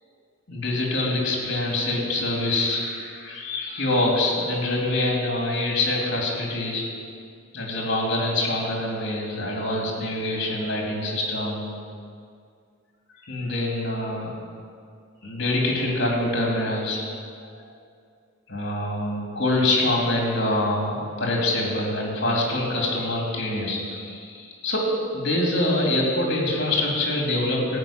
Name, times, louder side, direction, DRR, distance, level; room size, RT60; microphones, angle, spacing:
voice 1, 0.5-6.8 7.5-11.6 13.3-14.3 15.2-17.0 18.5-27.8, left 1 dB, 55° left, -2 dB, 3.0 m, -25 dB
14.5 x 5.5 x 8.9 m, 2.2 s
head